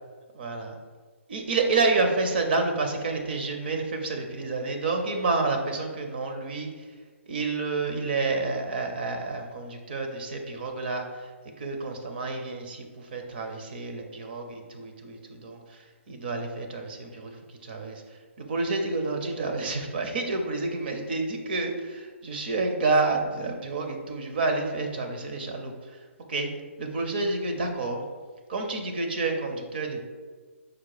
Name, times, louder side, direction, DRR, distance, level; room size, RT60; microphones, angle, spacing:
voice 1, 0.3-0.8 1.3-6.8 7.3-11.2 11.6-17.4 17.6-18.0 18.4-26.0 26.3-26.5 26.8-28.0 28.5-30.0, right 3 dB, 45° right, 4 dB, 0.6 m, -29 dB
4.8 x 2.2 x 4.7 m, 1.5 s
hypercardioid pair, 165°, 7 cm